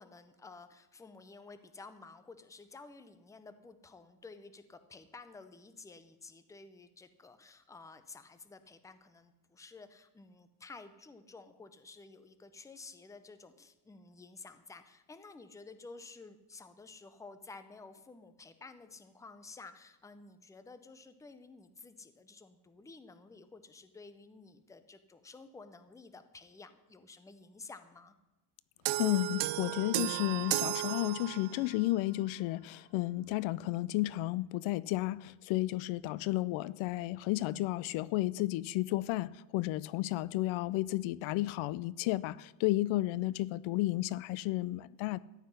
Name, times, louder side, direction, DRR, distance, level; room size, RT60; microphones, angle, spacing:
voice 1, 0.0-28.1, left 3 dB, 5° left, 0.6 m, -52 dB
sound 1, 28.8-31.7, right 17 dB, 70° right, 0.6 m, -34 dB
voice 2, 29.0-45.2, left 17 dB, 70° left, 0.6 m, -32 dB
14.0 x 5.9 x 9.8 m
cardioid pair, 150°, 48 cm